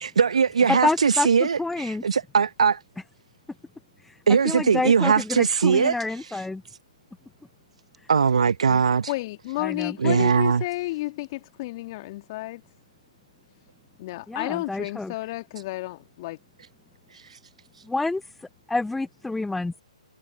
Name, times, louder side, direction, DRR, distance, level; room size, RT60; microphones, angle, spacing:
voice 1, 0.0-2.8 4.3-5.9 8.1-9.1 10.0-10.6, right 6 dB, 65° right, 1.3 m, -20 dB
voice 2, 0.7-2.0 4.0-4.2 4.4-6.6 8.7-8.8 9.6-10.1 14.3-15.1 17.8-19.8, left 2 dB, 5° left, 0.6 m, -28 dB
voice 3, 9.1-12.6 14.0-16.4, left 19 dB, 35° left, 2.4 m, -31 dB
figure-of-eight pair, 135°, 4 cm